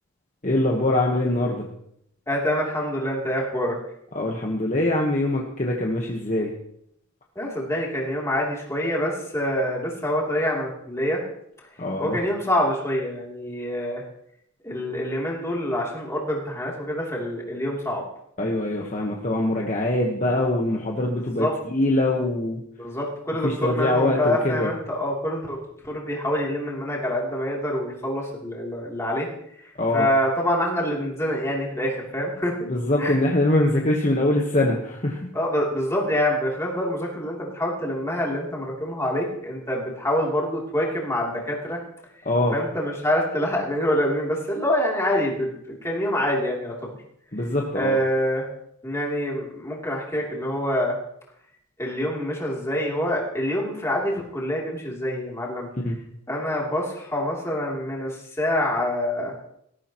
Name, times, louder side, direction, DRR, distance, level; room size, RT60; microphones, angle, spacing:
voice 1, 0.4-1.7 4.1-6.5 11.8-12.2 18.4-22.6 23.4-24.7 29.8-30.1 32.6-35.2 42.2-42.5 47.3-48.0 55.8-56.0, left 1 dB, 35° left, -1 dB, 1.3 m, -23 dB
voice 2, 2.3-3.8 7.3-11.2 12.0-14.0 14.6-18.0 21.1-21.5 22.8-25.6 25.8-29.3 29.9-32.6 33.0-33.2 35.3-41.8 42.5-46.9 47.7-48.5 48.8-51.0 51.8-55.7 56.3-59.3, left 1 dB, 10° left, -3 dB, 3.1 m, -26 dB
19.0 x 14.0 x 3.1 m, 0.74 s
head